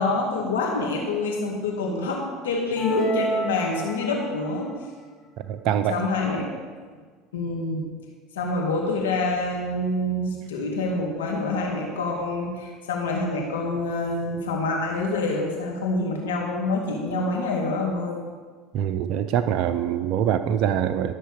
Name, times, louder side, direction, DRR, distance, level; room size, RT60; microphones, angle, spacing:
voice 1, 0.0-4.7 5.9-6.5 7.3-7.8 8.3-18.2, left 2 dB, 90° left, 0 dB, 2.2 m, -26 dB
sound 1, 2.8-4.4, right 1 dB, 30° left, 1.6 m, -28 dB
voice 2, 5.4-6.0 18.7-21.1, right 9 dB, 60° right, 9 dB, 0.5 m, -24 dB
13.0 x 6.6 x 5.0 m, 1.5 s
hypercardioid pair, 85°, 0 cm